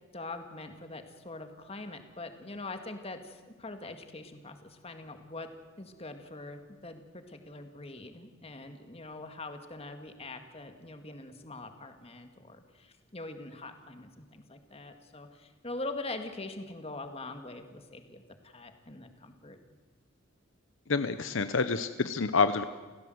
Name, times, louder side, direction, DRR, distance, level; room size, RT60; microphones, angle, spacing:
voice 1, 0.1-5.5 5.8-19.6, left 2 dB, 30° left, 7 dB, 2.0 m, -43 dB
voice 2, 20.9-22.6, left 4 dB, 65° left, 11 dB, 0.8 m, -27 dB
30.0 x 16.0 x 7.9 m, 1.4 s
head